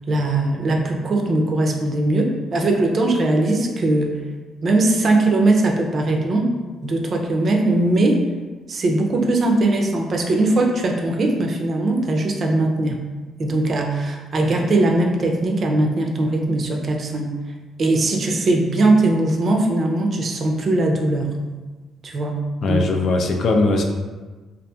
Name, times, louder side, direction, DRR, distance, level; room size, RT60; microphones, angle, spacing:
voice 1, 0.1-4.2 4.6-6.5 6.8-8.2 8.7-13.0 13.4-17.3 17.8-21.3 22.0-22.4 22.7-22.8, right 2 dB, 50° right, 1 dB, 0.4 m, -20 dB
voice 2, 22.6-23.8, left 2 dB, 65° left, 3 dB, 0.3 m, -19 dB
2.7 x 2.4 x 2.3 m, 1.3 s
cardioid pair, 90°, 0 cm